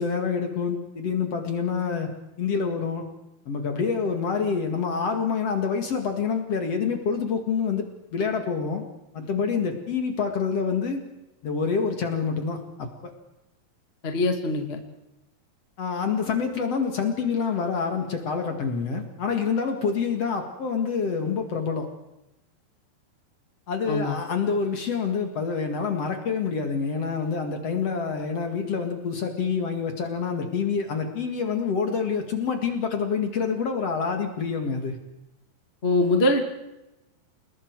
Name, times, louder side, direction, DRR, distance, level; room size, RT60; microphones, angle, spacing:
voice 1, 0.0-2.1 2.4-3.0 3.5-8.8 9.1-11.0 11.4-13.1 15.8-21.9 23.7-35.0, left 5 dB, 45° left, 4 dB, 2.4 m, -27 dB
voice 2, 14.0-14.8 23.9-24.2 35.8-36.5, left 2 dB, 25° left, 4 dB, 1.2 m, -23 dB
29.0 x 20.0 x 4.7 m, 0.94 s
omnidirectional pair, 4.9 m